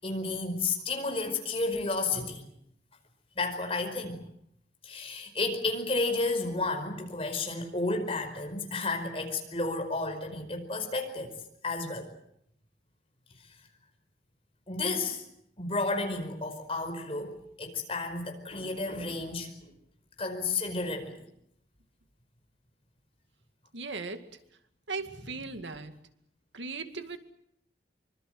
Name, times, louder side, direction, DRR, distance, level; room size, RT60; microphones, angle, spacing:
voice 1, 0.0-2.5 3.3-4.2 4.8-11.4 11.6-12.1 14.7-15.2 15.6-19.7 20.2-21.3 25.2-25.3, left 3 dB, 30° left, 5 dB, 5.0 m, -32 dB
voice 2, 23.7-24.2 24.9-25.9 26.5-27.2, right 4 dB, 85° right, 8 dB, 2.2 m, -37 dB
25.5 x 25.0 x 7.8 m, 0.74 s
head